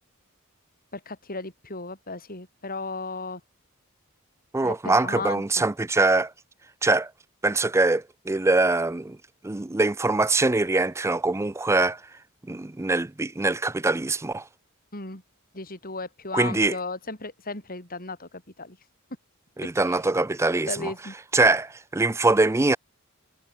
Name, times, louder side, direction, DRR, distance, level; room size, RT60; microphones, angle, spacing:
voice 1, 0.9-3.4 4.6-5.7 14.9-15.2 15.5-18.8 19.8-20.0 20.7-21.1, left 3 dB, 40° left, 7.8 m, -35 dB
voice 2, 4.5-6.3 6.8-7.1 7.4-9.2 9.4-12.0 12.5-14.4 16.3-16.8 19.6-20.9 21.3-22.8, right 2 dB, 15° right, 0.4 m, -23 dB
head